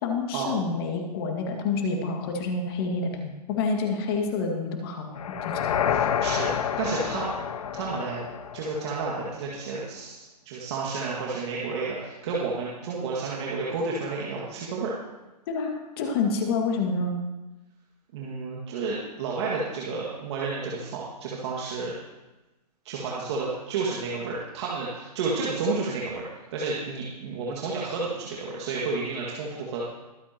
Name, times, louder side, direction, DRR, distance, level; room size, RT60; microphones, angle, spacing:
voice 1, 0.0-3.1 3.5-5.6 15.5-17.2, left 4 dB, 35° left, 2 dB, 2.2 m, -28 dB
sound 1, 5.2-9.3, left 8 dB, 60° left, 0.8 m, -29 dB
voice 2, 5.9-7.3 7.7-8.2 8.5-14.9 18.1-21.9 22.8-26.2 26.5-29.8, right 4 dB, 40° right, -5 dB, 2.2 m, -31 dB
22.5 x 8.4 x 3.0 m, 1.1 s
hypercardioid pair, 145°, 21 cm